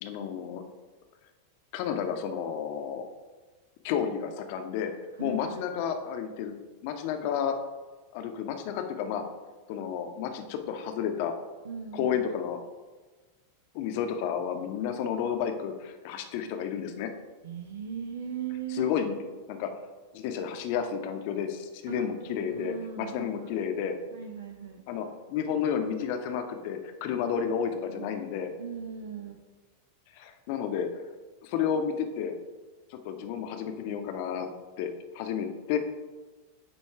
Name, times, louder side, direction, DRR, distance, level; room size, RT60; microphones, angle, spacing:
voice 1, 0.0-0.6 1.7-3.1 3.8-4.9 5.2-6.5 6.8-7.5 8.1-9.2 9.7-11.3 11.9-12.6 13.7-17.1 18.7-19.2 19.5-19.7 20.1-24.0 24.9-28.5 30.1-30.9 31.4-32.3 32.9-34.5 34.8-34.9 35.1-35.8, left 8 dB, 45° left, 6 dB, 0.7 m, -31 dB
voice 2, 5.2-5.8 11.6-12.2 17.4-18.8 21.9-23.5 24.1-24.8 27.6-28.1 28.6-29.4, right 7 dB, 65° right, 4 dB, 0.5 m, -39 dB
8.8 x 3.1 x 4.6 m, 1.3 s
figure-of-eight pair, 90°, 0 cm